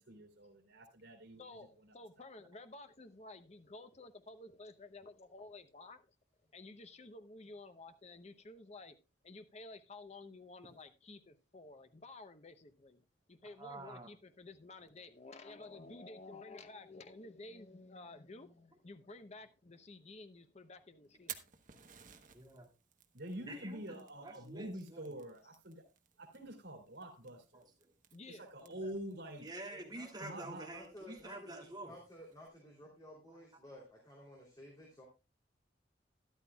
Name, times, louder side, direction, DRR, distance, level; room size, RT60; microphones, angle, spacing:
voice 1, 0.0-1.4 23.1-25.9 26.2-27.7 28.3-29.5 30.2-30.7, right 1 dB, 90° right, 2.8 m, -46 dB
voice 2, 1.4-6.1 6.5-9.0 9.2-21.5 28.1-28.9, left 2 dB, 35° left, 0.8 m, -53 dB
voice 3, 13.4-14.1 22.3-22.7 23.4-25.2 27.5-27.6 29.4-31.9, right 2 dB, 25° right, 2.7 m, -48 dB
Fire, 21.0-32.5, right 10 dB, 45° right, 1.0 m, -57 dB
voice 4, 29.7-35.0, equal, 20° left, 3.1 m, -54 dB
12.5 x 12.0 x 2.3 m
head